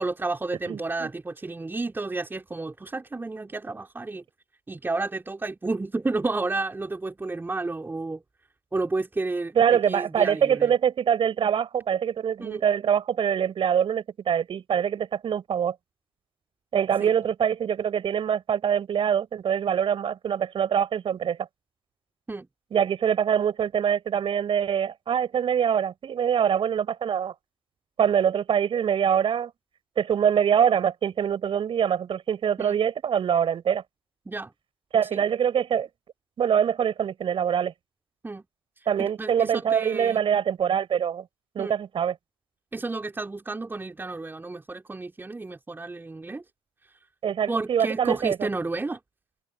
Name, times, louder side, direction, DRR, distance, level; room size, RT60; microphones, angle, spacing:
voice 1, 0.0-4.2 4.7-8.2 8.7-10.7 12.4-12.6 17.0-17.1 22.3-22.5 32.6-32.8 34.3-34.5 35.1-35.2 38.2-38.4 39.0-40.2 41.6-41.7 42.7-46.4 47.5-49.0, right 3 dB, 15° right, 4.6 m, -31 dB
voice 2, 0.7-1.1 9.5-15.7 16.7-21.4 22.7-27.3 28.0-29.5 30.0-33.8 34.9-35.9 36.4-37.7 38.9-41.3 41.5-42.2 47.2-48.5, right 8 dB, 35° right, 6.5 m, -24 dB
figure-of-eight pair, 60°, 14 cm